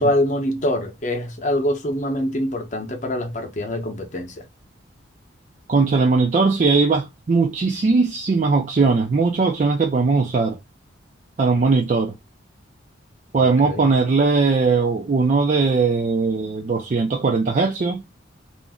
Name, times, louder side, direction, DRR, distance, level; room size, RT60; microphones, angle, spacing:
voice 1, 0.0-4.4 13.4-13.8, left 1 dB, 40° left, 0.7 m, -24 dB
voice 2, 5.7-10.6 11.4-12.1 13.3-18.0, right 4 dB, 40° right, 0.3 m, -19 dB
2.5 x 2.0 x 3.4 m
head